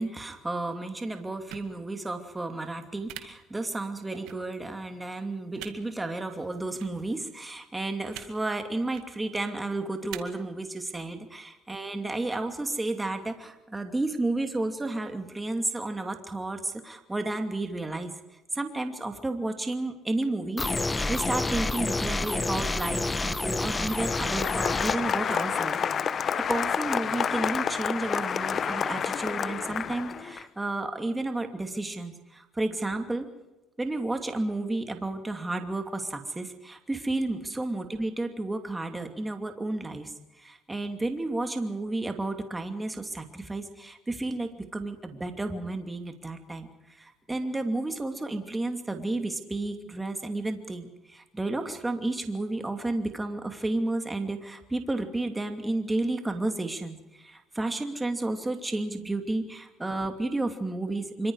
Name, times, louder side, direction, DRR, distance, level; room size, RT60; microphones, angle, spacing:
voice 1, 0.0-18.1 18.5-20.6 21.1-33.3 33.8-61.3, right 2 dB, 15° right, 5 dB, 2.6 m, -32 dB
sound 1, 1.5-1.7 3.1-3.2 4.3-4.4 5.6-5.7 6.8-6.9 8.1-8.3 8.8-9.1 10.1-10.2, right 16 dB, 80° right, 2.0 m, -40 dB
sound 2, 20.6-25.0, left 2 dB, 15° left, 1.2 m, -29 dB
Applause, 23.5-30.4, left 7 dB, 40° left, 0.8 m, -29 dB
26.0 x 24.5 x 4.9 m, 1.0 s
cardioid pair, 100°, 0 cm